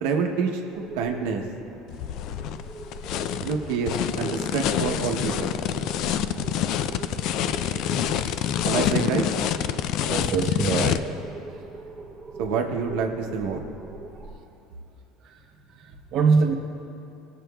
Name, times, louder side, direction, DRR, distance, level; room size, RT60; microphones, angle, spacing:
voice 1, 0.0-0.6 1.0-1.4 3.4-5.5 8.6-9.2 12.4-13.6, right 5 dB, 80° right, 2 dB, 0.8 m, -27 dB
sound 1, 0.7-14.4, right 3 dB, 15° right, 0.7 m, -41 dB
sound 2, 1.9-11.0, left 10 dB, 55° left, 0.3 m, -27 dB
voice 2, 10.1-11.2 15.9-16.5, right 5 dB, 45° right, 2 dB, 0.8 m, -23 dB
19.5 x 7.5 x 2.3 m, 2.8 s
cardioid pair, 140°, 0 cm